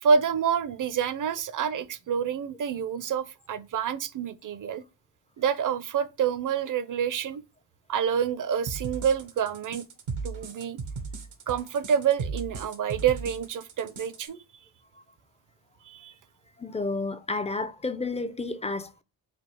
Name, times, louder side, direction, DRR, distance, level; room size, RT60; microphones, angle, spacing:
voice 1, 0.0-4.8 5.4-7.4 7.9-9.9 10.2-10.8 11.5-14.4 15.8-16.1, right 7 dB, 45° right, 0.5 m, -27 dB
sound 1, 8.7-14.3, right 4 dB, 90° right, 0.9 m, -36 dB
voice 2, 16.6-19.0, left 3 dB, 15° left, 0.3 m, -31 dB
3.5 x 2.3 x 4.3 m
cardioid pair, 60°, 45 cm